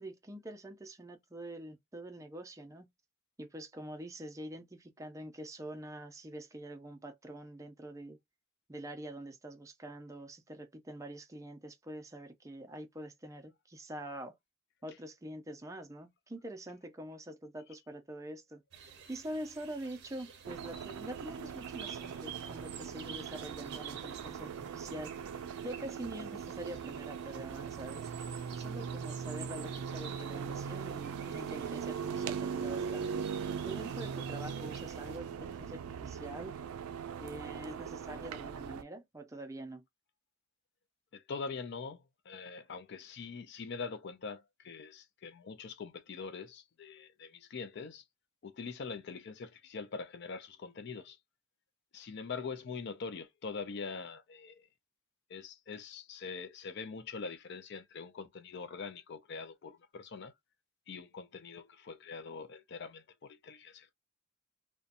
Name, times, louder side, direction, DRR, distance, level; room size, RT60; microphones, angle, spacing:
voice 1, 0.0-2.9 3.4-8.2 8.7-14.3 14.8-25.1 25.6-28.1 28.6-33.2 33.6-36.5 37.2-39.8, right 1 dB, 15° right, 0.4 m, -45 dB
sound 1, 18.7-35.2, right 7 dB, 55° right, 0.6 m, -51 dB
sound 2, 20.4-38.8, right 7 dB, 90° right, 0.3 m, -40 dB
voice 2, 41.1-48.0 48.4-51.2 51.9-54.7 55.3-60.3 60.9-63.9, left 5 dB, 55° left, 0.4 m, -43 dB
2.7 x 2.2 x 2.4 m
head